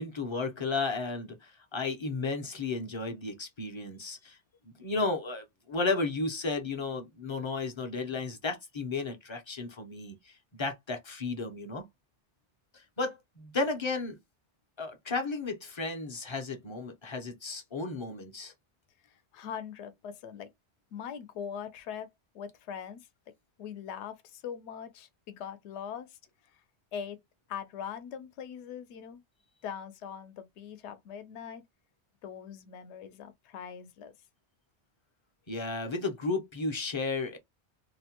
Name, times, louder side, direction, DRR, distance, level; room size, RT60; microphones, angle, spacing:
voice 1, 0.0-4.4 4.8-11.8 12.7-14.2 14.8-18.5 35.5-37.4, left 3 dB, 35° left, 0.5 m, -33 dB
voice 2, 19.0-20.5 20.9-22.1 22.3-23.1 23.6-26.2 26.5-26.6 26.9-27.2 27.5-29.2 29.6-31.6 32.2-34.1, left 8 dB, 75° left, 0.9 m, -41 dB
2.8 x 2.1 x 2.8 m
omnidirectional pair, 1.2 m